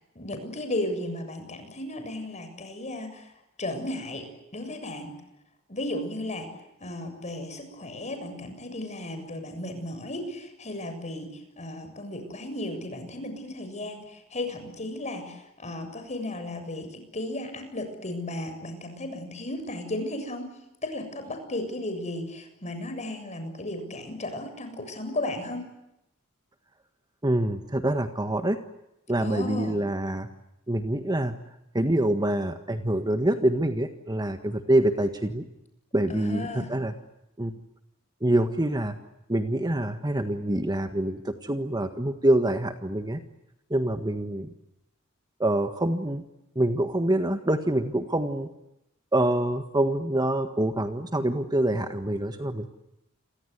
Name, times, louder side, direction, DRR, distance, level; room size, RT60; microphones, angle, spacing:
voice 1, 0.2-3.3 3.6-5.1 5.7-6.5 6.8-20.5 20.8-25.7 29.2-29.8 36.1-36.7, left 1 dB, 35° left, 7 dB, 7.3 m, -35 dB
voice 2, 27.2-28.6 29.1-30.3 30.7-31.3 31.7-35.5 35.9-36.9 37.4-37.5 38.2-39.0 39.3-43.2 43.7-44.5 45.4-46.2 46.5-48.5 49.1-52.7, right 1 dB, 20° right, 8 dB, 1.6 m, -25 dB
29.5 x 24.0 x 8.2 m, 0.88 s
head